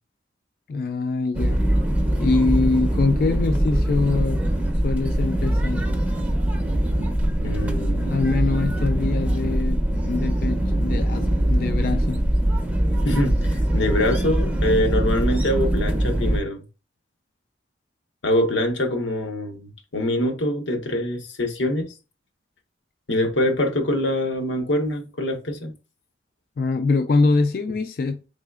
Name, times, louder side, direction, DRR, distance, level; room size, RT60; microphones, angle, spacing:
voice 1, 0.7-1.6 2.1-4.4 4.8-5.8 8.1-12.2 26.6-28.2, left 3 dB, 50° left, 0.3 m, -24 dB
sound 1, 1.3-16.4, right 1 dB, 10° right, 0.5 m, -22 dB
voice 2, 7.4-8.2 13.0-16.6 18.2-21.9 23.1-25.7, left 1 dB, 90° left, 1.0 m, -24 dB
4.0 x 3.8 x 2.3 m
head